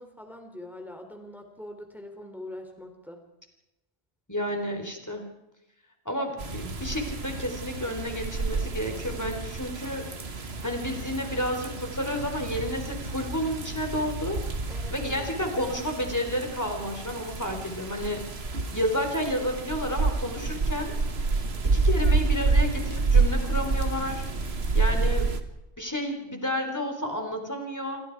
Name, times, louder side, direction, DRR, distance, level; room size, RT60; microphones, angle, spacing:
voice 1, 0.0-3.2 14.7-15.3, left 1 dB, ahead, 4 dB, 3.1 m, -43 dB
voice 2, 4.3-5.2 6.1-10.1 10.6-14.4 14.9-18.2 18.7-20.9 21.6-24.2 24.7-25.3 25.8-28.0, equal, 15° left, 4 dB, 4.0 m, -31 dB
sound 1, 6.4-25.4, right 3 dB, 70° right, 1.9 m, -29 dB
28.0 x 24.5 x 4.8 m, 0.92 s
omnidirectional pair, 1.1 m